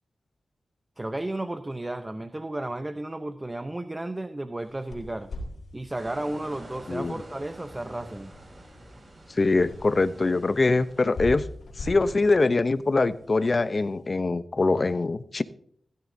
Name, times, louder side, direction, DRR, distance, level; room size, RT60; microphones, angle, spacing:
voice 1, 1.0-5.3 5.7-8.4, right 1 dB, 20° right, 9 dB, 0.7 m, -33 dB
sound 1, 4.6-14.0, left 1 dB, 80° left, 2.7 m, -42 dB
sound 2, 5.9-11.6, right 1 dB, 45° right, 5.2 m, -47 dB
voice 2, 9.4-11.5 11.8-15.4, left 3 dB, 45° left, 14 dB, 0.6 m, -23 dB
16.5 x 12.5 x 2.7 m, 0.63 s
cardioid pair, 60°, 0 cm